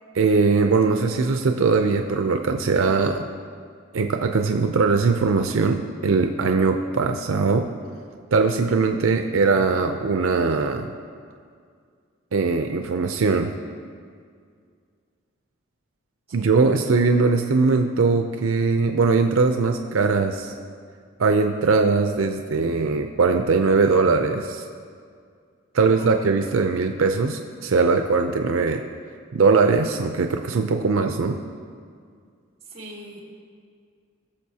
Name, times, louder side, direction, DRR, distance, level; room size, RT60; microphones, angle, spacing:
voice 1, 0.2-3.3 3.9-7.7 8.3-10.9 12.3-13.5 16.3-20.5 21.2-24.6 25.7-28.8 29.3-31.4, right 4 dB, 85° right, 6 dB, 0.5 m, -20 dB
voice 2, 25.8-26.1 32.7-33.2, right 1 dB, 30° right, -3 dB, 2.2 m, -41 dB
20.0 x 6.9 x 2.8 m, 2.1 s
head